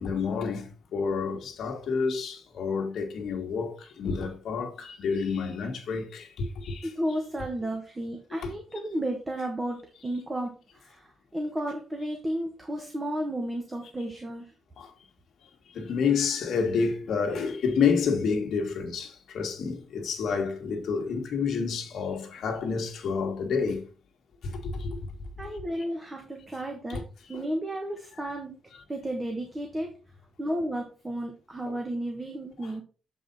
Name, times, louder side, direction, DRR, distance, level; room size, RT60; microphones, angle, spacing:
voice 1, 0.0-6.9 8.4-8.5 14.8-14.9 15.7-23.8 24.4-25.0 26.9-27.0 27.3-27.4 28.2-28.4 31.7-31.8, left 5 dB, 65° left, 1.7 m, -29 dB
voice 2, 6.8-14.5 25.4-27.0 27.3-28.6 28.9-29.9 30.4-32.8, right 1 dB, 15° right, 1.2 m, -33 dB
7.8 x 5.4 x 4.1 m
wide cardioid pair, 150°, 0 cm